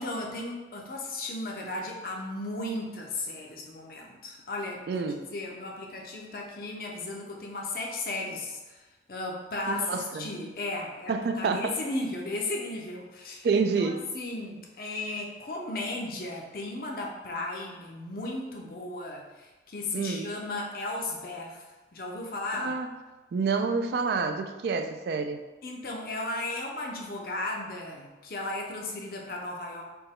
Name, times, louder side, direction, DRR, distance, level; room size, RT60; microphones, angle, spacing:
voice 1, 0.0-8.8 9.1-21.6 21.9-22.8 25.6-29.8, left 2 dB, 50° left, 0 dB, 0.6 m, -35 dB
voice 2, 4.9-5.2 9.7-10.3 11.1-11.8 13.4-14.0 19.9-20.3 22.5-22.9 23.3-25.4, right 4 dB, 65° right, 7 dB, 0.3 m, -28 dB
4.2 x 2.2 x 3.6 m, 1.2 s
head